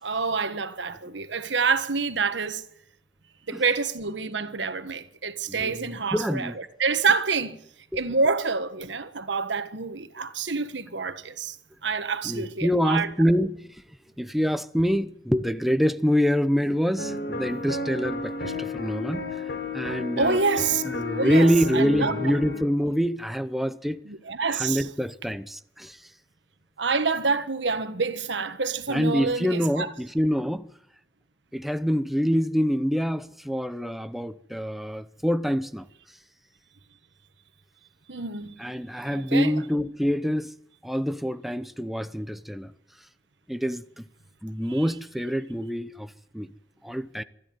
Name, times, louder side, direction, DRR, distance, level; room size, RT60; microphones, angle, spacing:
voice 1, 0.0-2.6 3.5-7.6 7.9-11.6 11.8-13.1 20.2-20.8 21.1-22.1 24.0-24.9 26.8-29.9 38.1-38.6 39.1-39.5 44.7-44.8, right 4 dB, 80° right, 1.5 m, -27 dB
voice 2, 5.5-6.5 7.9-8.0 12.2-13.8 14.2-19.4 19.7-20.4 20.8-24.0 24.5-26.0 28.9-30.7 31.5-35.9 38.6-40.5 40.8-42.7 43.5-44.0 44.4-46.5 46.8-47.2, equal, ahead, 0.7 m, -26 dB
sound 1, 17.0-22.6, left 3 dB, 65° left, 3.5 m, -32 dB
23.0 x 13.5 x 9.3 m
head